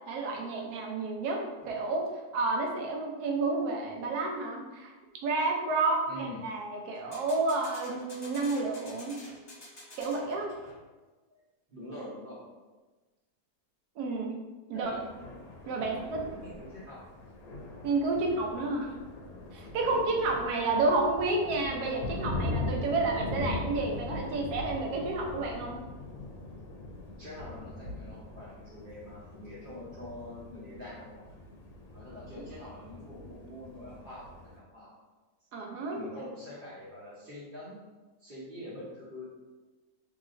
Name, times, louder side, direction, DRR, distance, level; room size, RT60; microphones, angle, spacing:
voice 1, 0.1-4.9 5.2-9.2 10.0-10.5 14.0-14.3 14.7-14.9 15.7-16.2 17.8-18.9 19.5-25.8 35.5-36.0, right 3 dB, 75° right, 0 dB, 1.1 m, -30 dB
sound 1, 1.6-2.1 6.9-11.0, left 1 dB, 20° left, 0.9 m, -49 dB
voice 2, 6.1-6.4 11.7-12.4 14.7-15.0 15.7-17.0 19.8-20.1 27.2-31.3 31.9-34.9 35.9-37.8 38.2-39.3, equal, 40° right, -9 dB, 0.9 m, -44 dB
Thunder, 14.8-34.6, left 2 dB, 65° left, 0.9 m, -41 dB
3.0 x 2.8 x 2.5 m, 1.2 s
omnidirectional pair, 1.7 m